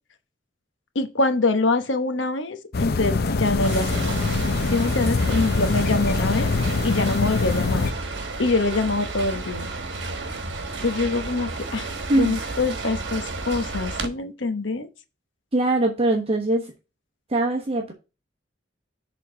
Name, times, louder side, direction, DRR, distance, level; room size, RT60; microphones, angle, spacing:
voice 1, 0.9-4.3 4.7-6.5 6.8-7.9 8.4-9.7 10.8-11.9 12.1-14.9, left 3 dB, 75° left, 1.0 m, -24 dB
sound 1, 2.7-7.9, left 3 dB, 55° left, 0.6 m, -24 dB
sound 2, 3.6-14.1, right 3 dB, 65° right, 1.3 m, -32 dB
voice 2, 15.5-16.7 17.3-17.9, right 2 dB, 30° right, 1.1 m, -22 dB
6.7 x 3.8 x 5.8 m
head